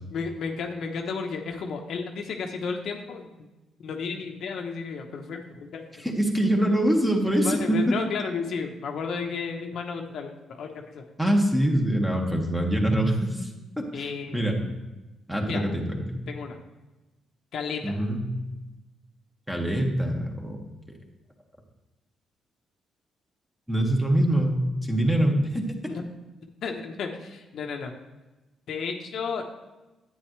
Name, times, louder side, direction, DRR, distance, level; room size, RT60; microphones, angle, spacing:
voice 1, 0.1-3.3 3.8-6.0 7.4-11.0 13.9-14.8 15.4-15.7 16.3-16.6 17.5-18.0 25.8-26.0 26.6-27.9 28.7-29.5, left 5 dB, 70° left, 3 dB, 1.0 m, -33 dB
voice 2, 6.0-7.8 11.2-13.5 13.9-14.6 15.3-16.2 17.8-18.2 19.5-20.6 23.7-24.6 24.8-25.6, right 1 dB, 5° right, 1 dB, 1.7 m, -24 dB
10.0 x 9.0 x 3.2 m, 1.1 s
cardioid pair, 90°, 0 cm